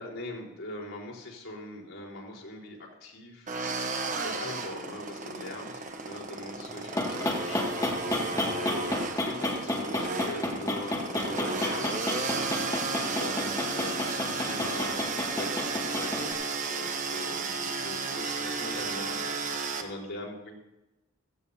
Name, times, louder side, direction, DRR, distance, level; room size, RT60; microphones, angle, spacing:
voice 1, 0.0-15.0 15.4-15.7 16.0-16.3 16.6-20.6, left 1 dB, 70° left, -4 dB, 4.2 m, -41 dB
sound 1, 3.5-19.8, right 4 dB, 35° right, 1.1 m, -33 dB
sound 2, 6.7-16.3, left 1 dB, 15° left, 2.1 m, -32 dB
16.0 x 16.0 x 2.8 m, 0.97 s
head